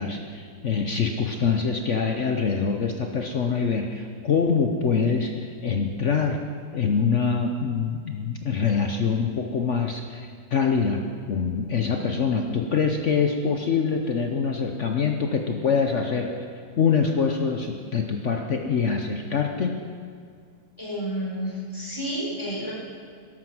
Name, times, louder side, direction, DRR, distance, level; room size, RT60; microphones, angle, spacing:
voice 1, 0.0-6.4 6.7-11.0 11.3-16.3 16.8-19.7, left 5 dB, 55° left, 3 dB, 0.9 m, -24 dB
voice 2, 20.8-22.7, equal, 15° left, -6 dB, 4.1 m, -30 dB
13.5 x 11.0 x 6.1 m, 2.2 s
omnidirectional pair, 2.1 m